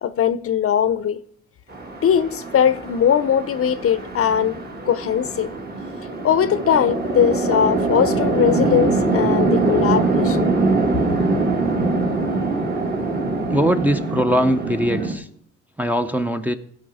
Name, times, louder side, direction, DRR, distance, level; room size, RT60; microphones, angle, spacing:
voice 1, 0.0-1.2 2.0-4.6 4.9-5.5 6.2-10.5, left 8 dB, 50° left, 0.6 m, -20 dB
Chatter / Traffic noise roadway noise / Train, 1.7-15.1, right 3 dB, 30° right, 1.6 m, -23 dB
voice 2, 13.5-15.3 15.8-16.5, equal, 5° right, 0.6 m, -21 dB
15.5 x 5.2 x 4.9 m
cardioid pair, 90°, 30 cm